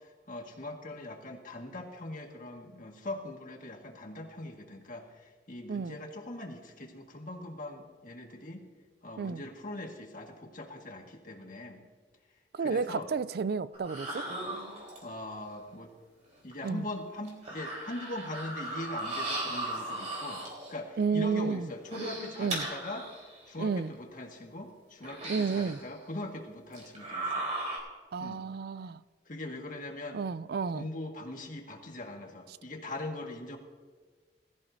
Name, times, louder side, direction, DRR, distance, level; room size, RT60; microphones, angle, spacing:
voice 1, 0.0-8.7 9.0-11.9 12.6-13.1 15.0-15.9 16.4-23.1 23.5-27.5 28.2-28.4 29.3-30.2 30.7-33.6, left 1 dB, 50° left, 1.7 m, -41 dB
voice 2, 12.5-14.3 16.6-16.9 21.0-21.7 22.4-22.7 23.6-23.9 25.3-25.8 28.1-29.0 30.1-30.9, right 5 dB, 60° right, 0.4 m, -31 dB
sound 1, 13.7-15.2 16.5-16.6 17.2-20.8 21.7-23.4 23.9-24.0 25.0-25.9 26.7-27.8, right 2 dB, 45° right, 3.8 m, -37 dB
20.0 x 14.0 x 2.7 m
head